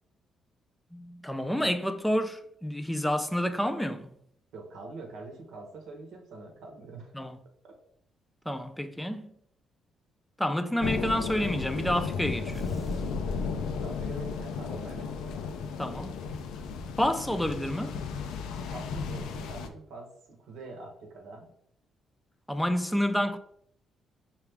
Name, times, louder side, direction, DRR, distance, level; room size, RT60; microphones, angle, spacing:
voice 1, 0.9-4.1 7.1-7.4 8.5-9.3 10.4-12.7 15.8-16.2 17.0-18.0 22.5-23.4, equal, 5° left, 0.4 m, -29 dB
voice 2, 4.5-7.1 7.7-7.8 13.8-15.2 18.4-21.5, right 3 dB, 80° right, 0.8 m, -44 dB
sound 1, 10.8-19.7, left 5 dB, 90° left, 0.4 m, -34 dB
sound 2, 12.5-14.4, left 1 dB, 20° right, 0.7 m, -41 dB
4.7 x 2.4 x 3.4 m
cardioid pair, 90°, 0 cm